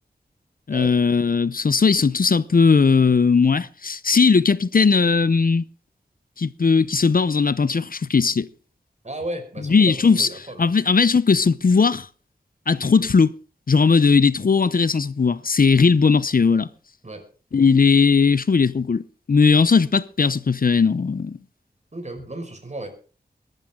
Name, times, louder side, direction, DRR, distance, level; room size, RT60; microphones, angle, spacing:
voice 1, 0.7-5.6 6.4-8.5 9.7-10.3 10.6-12.1 12.7-13.3 13.7-16.7 17.5-21.4, left 5 dB, 60° left, 0.7 m, -18 dB
voice 2, 9.0-10.7 12.9-13.1 17.0-17.3 21.9-22.9, right 1 dB, 45° right, 5.3 m, -34 dB
21.5 x 12.0 x 3.8 m
wide cardioid pair, 55°, 17 cm